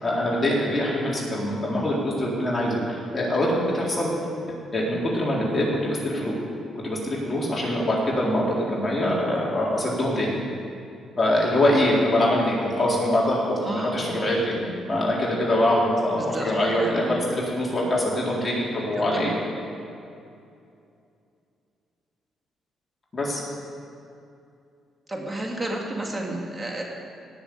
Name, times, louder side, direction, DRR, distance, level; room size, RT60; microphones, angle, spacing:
voice 1, 0.0-4.1 4.5-6.4 6.7-10.3 11.2-14.6 14.9-19.3 23.1-23.4, left 1 dB, 25° left, -5 dB, 4.1 m, -24 dB
voice 2, 13.6-14.2 14.6-15.0 16.2-16.5 16.8-17.2 18.9-19.4 25.1-26.8, right 2 dB, 20° right, -1 dB, 2.7 m, -32 dB
18.5 x 7.1 x 8.6 m, 2.5 s
cardioid pair, 90°, 0 cm